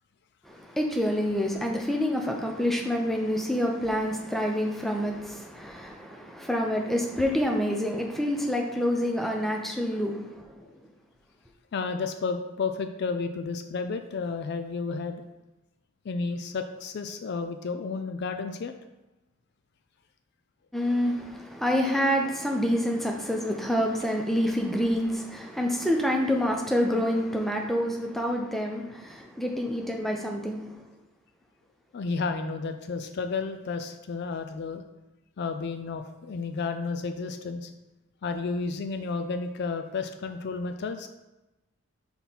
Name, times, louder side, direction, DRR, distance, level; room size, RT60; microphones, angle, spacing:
voice 1, 0.5-10.7 20.7-30.8, equal, ahead, 1 dB, 0.5 m, -27 dB
voice 2, 11.7-15.2 16.0-18.7 31.9-34.8 35.4-37.7 38.2-41.1, left 4 dB, 50° left, 8 dB, 0.3 m, -32 dB
5.4 x 4.3 x 4.1 m, 1.0 s
head